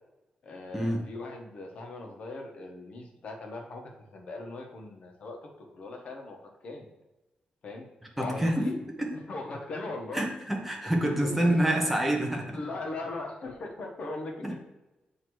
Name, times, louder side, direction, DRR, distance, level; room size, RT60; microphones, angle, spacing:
voice 1, 0.4-6.9 7.6-7.9 8.2-10.3 11.0-11.9 12.5-14.6, left 2 dB, 45° left, 1 dB, 1.0 m, -39 dB
voice 2, 8.2-8.7 9.0-9.1 10.1-12.6 14.4-14.5, right 1 dB, 5° right, 0 dB, 0.9 m, -27 dB
7.6 x 2.9 x 4.6 m, 1.0 s
wide cardioid pair, 180°, 3 cm